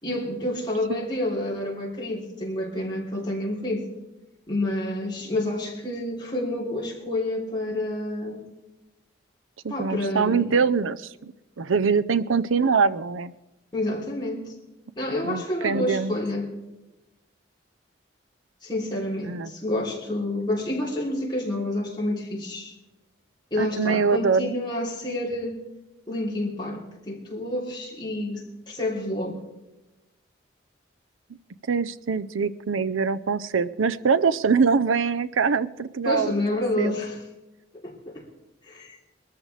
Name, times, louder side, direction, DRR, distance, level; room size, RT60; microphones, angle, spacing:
voice 1, 0.0-3.9 4.5-8.4 9.7-10.6 13.7-14.5 15.0-16.5 18.6-22.7 23.5-25.6 26.1-29.4 36.0-37.2 37.7-38.2 38.6-39.0, left 1 dB, 20° left, -3 dB, 3.3 m, -29 dB
voice 2, 9.6-13.3 15.2-16.2 19.3-19.5 23.6-24.5 31.7-36.9, right 5 dB, 90° right, 14 dB, 0.6 m, -24 dB
21.5 x 14.0 x 3.4 m, 0.99 s
head